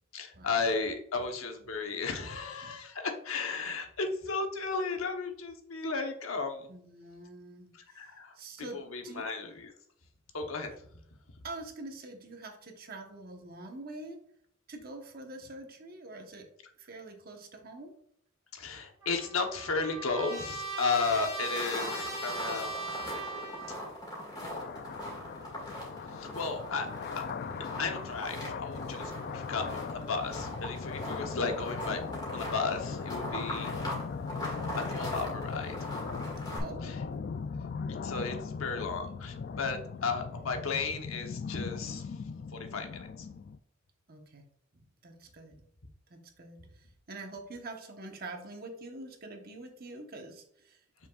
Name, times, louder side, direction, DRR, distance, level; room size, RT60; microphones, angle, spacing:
voice 1, 0.1-6.7 7.9-8.3 8.7-9.7 10.3-10.7 18.5-23.0 23.7-23.8 26.1-27.2 27.8-32.0 32.3-33.7 34.4-35.7 36.8-37.0 37.9-42.0 42.5-43.3, left 4 dB, 85° left, 4 dB, 1.0 m, -34 dB
voice 2, 2.3-2.8 6.7-9.3 11.4-14.2 14.7-16.5 16.8-17.9 30.4-30.6 31.2-31.4 36.0-36.2 36.5-37.1 37.9-38.1 40.0-40.1 44.1-44.4 44.7-45.6 46.1-51.1, right 2 dB, 45° right, 3 dB, 1.1 m, -46 dB
Trumpet, 19.0-23.9, right 3 dB, 15° right, 2.0 m, -39 dB
sound 1, 21.3-36.6, left 1 dB, 20° left, 2.0 m, -40 dB
sound 2, 24.4-43.6, left 5 dB, 50° left, 0.3 m, -39 dB
7.2 x 5.7 x 2.4 m, 0.68 s
head